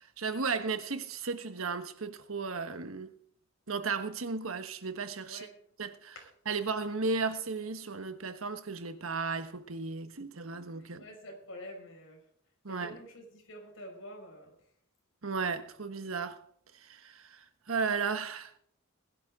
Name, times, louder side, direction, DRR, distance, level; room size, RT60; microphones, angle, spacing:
voice 1, 0.0-3.1 3.7-5.5 5.8-6.1 6.5-11.1 12.6-13.0 15.2-16.4 16.7-18.6, right 4 dB, 90° right, 1.3 m, -35 dB
voice 2, 11.0-12.2 12.7-14.6, equal, 65° left, 5.9 m, -47 dB
20.0 x 11.5 x 3.7 m
head